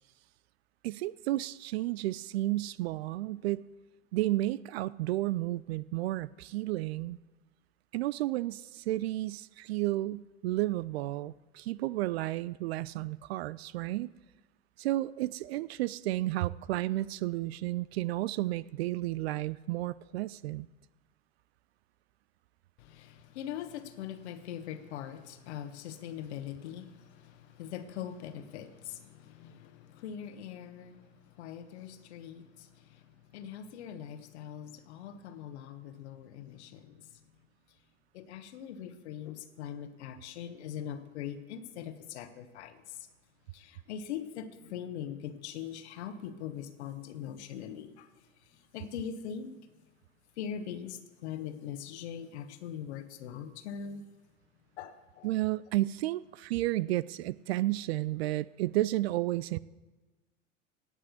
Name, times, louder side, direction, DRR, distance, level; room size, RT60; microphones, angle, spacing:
voice 1, 0.8-3.7 4.1-7.2 7.9-14.1 14.8-20.7 55.2-59.6, right 16 dB, 55° right, 20 dB, 0.4 m, -32 dB
voice 2, 22.8-37.2 38.1-43.1 43.5-48.1 48.4-49.7 50.4-54.0 54.8-55.3, left 9 dB, 60° left, 9 dB, 1.3 m, -42 dB
17.5 x 6.2 x 8.3 m, 1.2 s
figure-of-eight pair, 80°, 37 cm